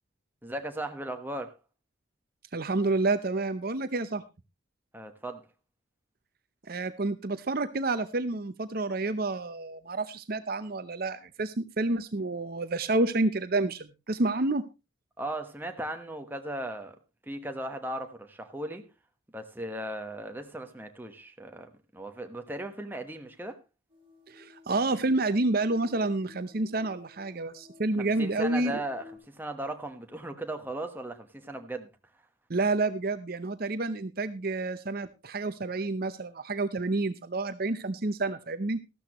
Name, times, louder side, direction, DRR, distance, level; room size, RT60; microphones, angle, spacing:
voice 1, 0.4-1.6 4.9-5.4 15.2-16.9 17.3-18.9 19.3-23.6 28.0-31.9, right 1 dB, 10° right, 1.2 m, -37 dB
voice 2, 2.5-4.2 6.7-14.6 24.3-28.7 32.5-38.8, right 2 dB, 45° right, 0.7 m, -29 dB
sound 1, 23.9-29.2, left 3 dB, 25° right, 4.7 m, -55 dB
14.0 x 12.5 x 3.0 m
head